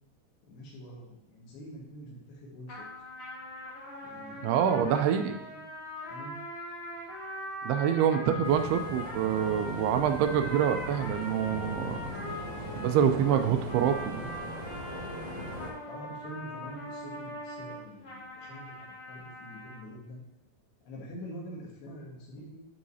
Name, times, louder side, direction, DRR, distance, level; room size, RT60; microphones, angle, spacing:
voice 1, 0.5-2.9 4.0-5.2 5.5-5.6 6.1-6.3 8.1-8.5 15.9-20.2 20.8-22.6, equal, 80° left, -3 dB, 3.6 m, -45 dB
sound 1, 2.7-19.8, left 1 dB, 55° left, 1.4 m, -41 dB
voice 2, 4.4-5.4 7.6-12.1 12.8-14.2, right 8 dB, 85° right, 7 dB, 2.6 m, -26 dB
sound 2, 8.4-15.7, right 1 dB, 65° right, 1.8 m, -40 dB
11.5 x 4.8 x 2.8 m, 0.94 s
omnidirectional pair, 4.6 m